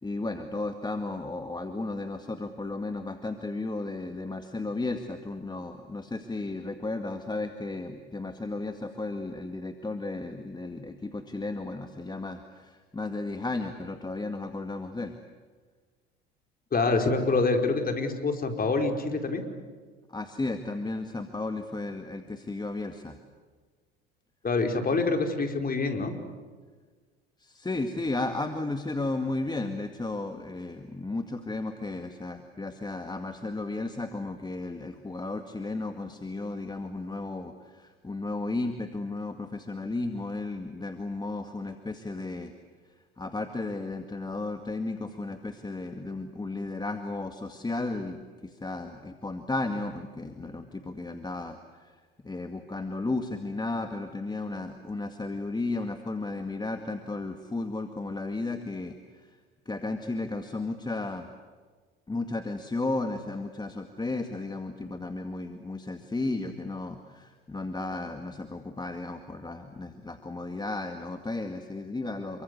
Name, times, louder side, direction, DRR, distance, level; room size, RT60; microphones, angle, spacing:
voice 1, 0.0-15.2 20.1-23.2 27.4-42.5 43.2-59.4 59.7-61.3 62.1-72.4, left 2 dB, 15° left, 7 dB, 2.1 m, -34 dB
voice 2, 16.7-19.4 24.4-26.1, left 3 dB, 30° left, 5 dB, 5.0 m, -26 dB
29.0 x 24.0 x 8.3 m, 1.5 s
hypercardioid pair, 70°, 29 cm